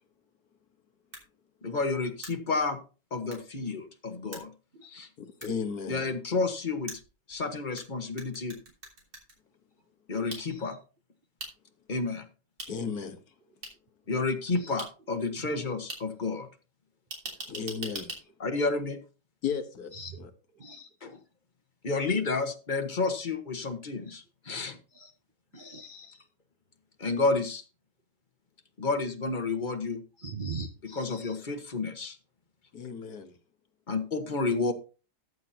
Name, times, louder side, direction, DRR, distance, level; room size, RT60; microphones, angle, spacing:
sound 1, 1.1-1.2 2.2-2.3 3.3-3.4 4.3-4.4 5.4-5.5 6.9-7.8 8.2-9.3 10.3-10.4 11.4-11.5 12.6-12.7 13.6-13.7 14.8-14.9 15.9-16.0 17.1-18.2, right 2 dB, 70° right, 3.9 m, -40 dB
voice 1, 1.6-2.8 3.1-4.5 4.9-5.1 5.9-6.9 7.3-8.6 10.1-10.8 11.9-12.3 14.1-16.5 18.4-19.0 21.0-21.1 21.8-24.8 27.0-27.6 28.8-30.0 31.0-32.2 33.9-34.7, left 3 dB, 30° left, 1.2 m, -30 dB
voice 2, 5.4-6.1 12.7-13.2 17.5-18.2 19.4-19.9 32.7-33.4, left 6 dB, 60° left, 1.6 m, -34 dB
voice 3, 10.2-10.8 14.5-14.7 15.4-15.7 19.9-21.2 24.0-24.2 24.9-25.1 25.5-26.3 30.2-31.5, right 3 dB, 50° right, 0.6 m, -43 dB
14.0 x 9.6 x 2.8 m
omnidirectional pair, 2.0 m